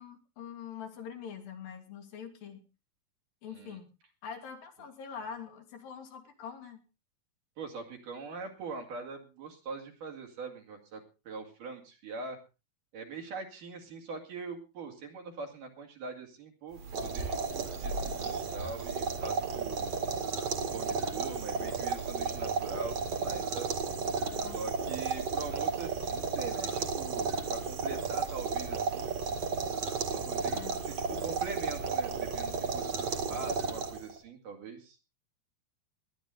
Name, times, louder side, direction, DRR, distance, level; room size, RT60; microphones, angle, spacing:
voice 1, 0.0-2.6 3.4-3.9 4.2-6.8 24.3-24.6 30.4-30.8, left 7 dB, 75° left, 5 dB, 3.8 m, -44 dB
voice 2, 3.5-3.8 7.6-12.4 12.9-19.9 20.6-23.7 24.4-29.1 30.1-35.0, right 4 dB, 65° right, 3 dB, 3.9 m, -43 dB
sound 1, 16.8-34.2, right 5 dB, 50° right, 2.8 m, -33 dB
20.0 x 11.0 x 3.8 m, 0.31 s
omnidirectional pair, 4.1 m